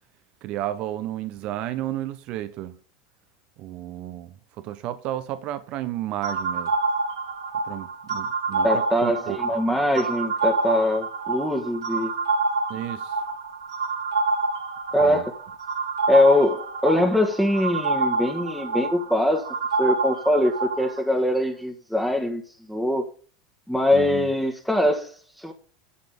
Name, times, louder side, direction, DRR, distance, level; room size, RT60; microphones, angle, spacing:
voice 1, 0.4-2.8 3.6-6.7 7.6-9.4 12.7-13.2 15.0-15.2 23.9-24.3, right 13 dB, 45° right, 1.0 m, -32 dB
sound 1, 6.2-21.0, right 3 dB, 75° right, 2.6 m, -27 dB
voice 2, 8.6-12.1 14.9-15.3 16.1-22.4 22.7-23.0 23.7-25.5, left 1 dB, ahead, 1.7 m, -22 dB
11.5 x 7.2 x 5.1 m
figure-of-eight pair, 80°, 2 cm